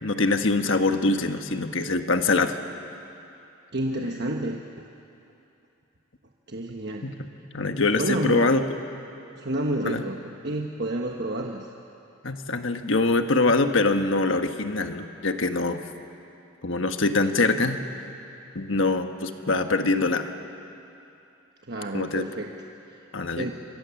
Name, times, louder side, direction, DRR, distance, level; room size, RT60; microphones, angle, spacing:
voice 1, 0.0-2.6 7.0-7.1 7.5-8.8 9.8-10.0 12.2-15.8 16.6-17.8 18.5-20.3 21.9-22.3 23.1-23.5, left 3 dB, 60° left, 7 dB, 1.3 m, -24 dB
voice 2, 3.7-4.6 6.5-7.1 8.0-8.5 9.3-10.2 10.4-11.7 21.7-22.5 23.4-23.5, right 1 dB, 50° right, 1 dB, 1.2 m, -29 dB
28.0 x 23.5 x 7.1 m, 2.8 s
head